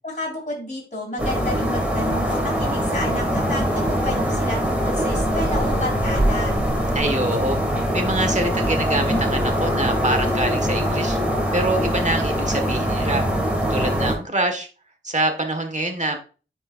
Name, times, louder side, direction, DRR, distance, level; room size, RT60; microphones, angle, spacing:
voice 1, 0.0-6.6, left 1 dB, 40° left, -3 dB, 2.9 m, -30 dB
Roomtone With Window Open, 1.2-14.2, equal, 5° right, 2.2 m, -22 dB
voice 2, 6.9-7.6 7.9-11.2 11.5-13.2 13.7-14.7 15.0-16.2, right 2 dB, 40° right, 6 dB, 1.5 m, -25 dB
9.4 x 4.4 x 2.5 m, 0.35 s
wide cardioid pair, 55°, 19 cm